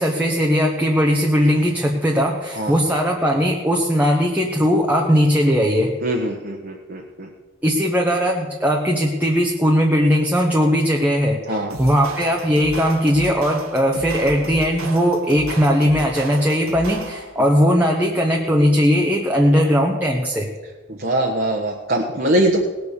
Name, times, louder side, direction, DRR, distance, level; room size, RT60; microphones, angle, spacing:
voice 1, 0.0-5.9 7.6-20.5, equal, 10° right, -1 dB, 1.0 m, -18 dB
voice 2, 6.0-7.3 11.5-11.7 20.9-22.6, right 1 dB, 50° right, 0 dB, 1.3 m, -22 dB
sound 1, 11.7-17.4, right 3 dB, 85° right, 1.6 m, -34 dB
18.5 x 7.2 x 6.7 m, 1.3 s
head